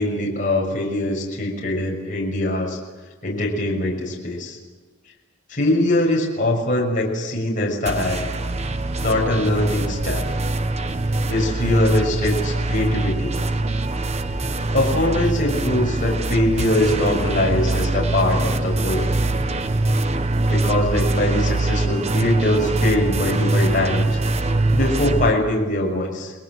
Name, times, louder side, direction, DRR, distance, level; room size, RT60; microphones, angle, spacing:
voice 1, 0.0-2.8 3.2-4.6 5.5-8.3 9.0-10.3 11.2-13.4 14.7-19.1 20.5-24.2 24.7-26.3, left 1 dB, 40° left, -2 dB, 6.4 m, -22 dB
sound 1, 7.9-25.3, right 2 dB, 30° right, 1.2 m, -23 dB
29.5 x 21.0 x 7.9 m, 1.3 s
head